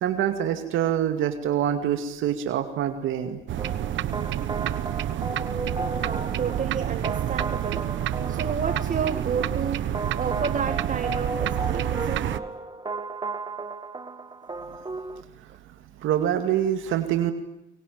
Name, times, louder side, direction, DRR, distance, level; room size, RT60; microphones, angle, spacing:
voice 1, 0.0-3.4 15.4-15.5 16.0-17.3, right 10 dB, 85° right, 7 dB, 2.3 m, -25 dB
sound 1, 3.5-12.4, right 12 dB, 70° right, 1.2 m, -29 dB
sound 2, 3.6-15.2, right 3 dB, 20° right, 1.8 m, -35 dB
voice 2, 5.9-7.8 8.3-12.4 14.5-14.6, right 6 dB, 40° right, 8 dB, 2.2 m, -31 dB
24.5 x 23.5 x 9.2 m, 0.90 s
cardioid pair, 90°, 20 cm